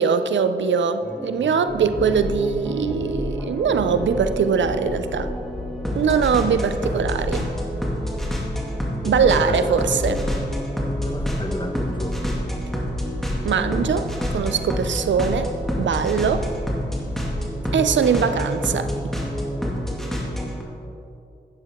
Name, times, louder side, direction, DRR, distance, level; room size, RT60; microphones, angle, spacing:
voice 1, 0.0-5.3 5.9-7.5 9.0-10.2 13.4-16.5 17.7-18.9, right 6 dB, 90° right, 10 dB, 0.5 m, -21 dB
sound 1, 1.0-20.6, equal, ahead, 2.2 m, -29 dB
sound 2, 1.7-17.5, left 1 dB, 45° left, 1.9 m, -33 dB
voice 2, 9.2-9.8 10.1-10.2 10.6-12.3, left 2 dB, 25° left, 4 dB, 1.1 m, -33 dB
12.0 x 9.1 x 3.7 m, 2.6 s
cardioid pair, 60°, 19 cm